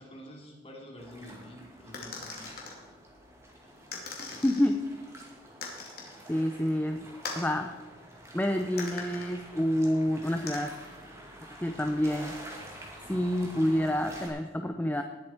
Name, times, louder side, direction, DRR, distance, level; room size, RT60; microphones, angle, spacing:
voice 1, 0.0-2.5, equal, 30° left, -1 dB, 2.9 m, -48 dB
sound 1, 1.0-14.3, right 1 dB, 15° right, 2.2 m, -48 dB
sound 2, 1.9-2.8 3.9-4.7 5.6-6.1 7.2-7.5 8.8-9.3 10.5-10.6, left 4 dB, 55° left, 2.5 m, -39 dB
voice 2, 4.4-4.9 6.3-7.1 7.4-7.7 8.3-10.7 11.6-12.3 13.1-15.0, left 1 dB, 10° left, 6 dB, 0.5 m, -28 dB
19.0 x 7.9 x 4.4 m, 1.3 s
head